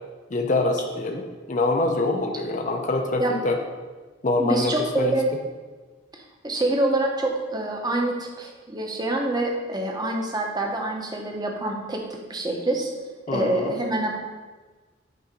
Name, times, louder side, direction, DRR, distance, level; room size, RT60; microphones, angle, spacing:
voice 1, 0.3-3.6 4.2-5.1 13.3-13.7, left 2 dB, 40° left, 3 dB, 0.6 m, -25 dB
voice 2, 4.4-5.3 6.1-12.0 12.3-12.9 13.3-14.1, right 2 dB, 20° right, 1 dB, 0.9 m, -26 dB
8.5 x 3.9 x 5.2 m, 1.3 s
head